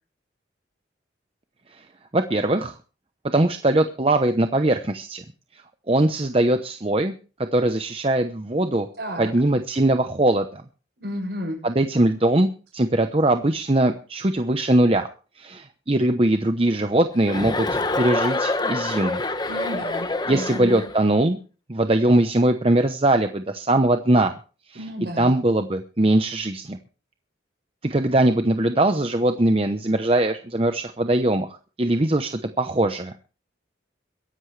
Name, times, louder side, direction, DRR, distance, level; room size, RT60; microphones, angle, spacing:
voice 1, 2.1-2.7 3.3-5.2 5.9-7.1 7.5-8.9 9.2-10.6 11.6-15.1 15.4-19.2 20.3-21.4 21.7-24.3 24.7-24.8 25.2-26.8 27.8-31.5 31.8-33.1, right 1 dB, 30° right, 7 dB, 0.8 m, -21 dB
voice 2, 9.0-9.3 11.0-11.6 19.5-20.8 24.7-25.3, equal, 60° right, 2 dB, 6.6 m, -32 dB
Chuckle chortle, 17.3-21.0, left 2 dB, 20° left, 1.0 m, -26 dB
22.5 x 11.0 x 3.3 m, 0.36 s
head